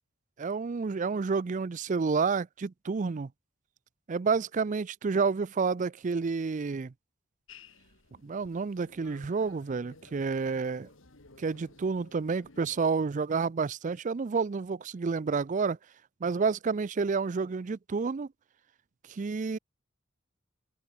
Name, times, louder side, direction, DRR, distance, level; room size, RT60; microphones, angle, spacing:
voice 1, 0.4-3.3 4.1-6.9 8.2-10.9 11.4-15.8 16.2-18.3 19.1-19.6, right 4 dB, 35° right, 0.4 m, -29 dB
sound 1, 7.5-12.8, left 3 dB, 70° left, 3.3 m, -56 dB
head